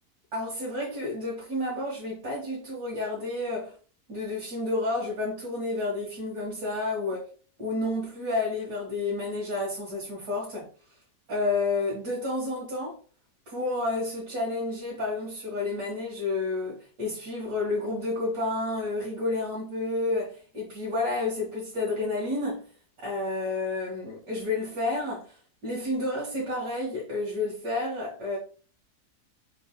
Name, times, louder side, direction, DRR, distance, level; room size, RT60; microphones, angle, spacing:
voice 1, 0.3-3.8 4.1-7.3 7.6-10.7 11.3-13.0 13.5-22.7 23.0-25.4 25.6-28.4, left 2 dB, 75° right, 2.0 m, -30 dB
5.7 x 3.8 x 2.2 m
omnidirectional pair, 1.8 m